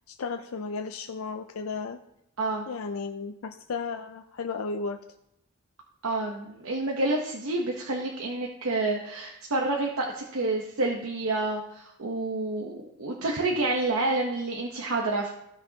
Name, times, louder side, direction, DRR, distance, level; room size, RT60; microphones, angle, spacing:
voice 1, 0.1-2.0 2.7-5.0, left 4 dB, 80° left, 5 dB, 0.5 m, -34 dB
voice 2, 6.0-15.3, right 2 dB, 85° right, 0 dB, 1.0 m, -29 dB
15.0 x 6.0 x 2.9 m, 0.81 s
head